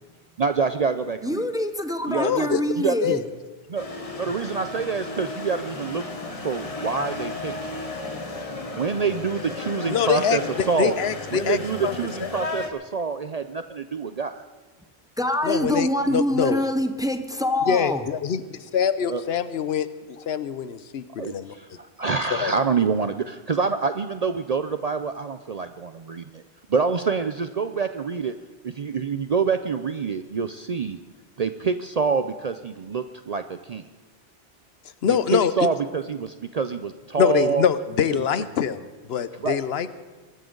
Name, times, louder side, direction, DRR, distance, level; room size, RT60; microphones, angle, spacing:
voice 1, 0.4-1.5 2.1-3.2 3.7-3.9 4.2-6.0 6.4-7.5 8.7-10.9 11.3-14.4 19.0-19.2 21.2-26.4 26.7-28.3 28.6-31.0 31.4-33.8 35.1-37.7 38.1-38.3 39.4-39.6, right 5 dB, 50° right, 9 dB, 0.5 m, -26 dB
voice 2, 1.2-3.2 15.2-18.0, left 1 dB, 5° right, 8 dB, 0.6 m, -25 dB
voice 3, 2.1-2.6 3.0-3.2 9.9-10.4 10.8-12.0 12.2-12.3 15.4-16.6 17.7-21.5 22.3-22.5 35.0-35.5 37.2-39.9, left 8 dB, 70° left, 13 dB, 0.9 m, -24 dB
sound 1, 3.7-12.7, left 3 dB, 35° left, 1.3 m, -34 dB
22.5 x 13.0 x 3.9 m, 1.2 s
omnidirectional pair, 1.1 m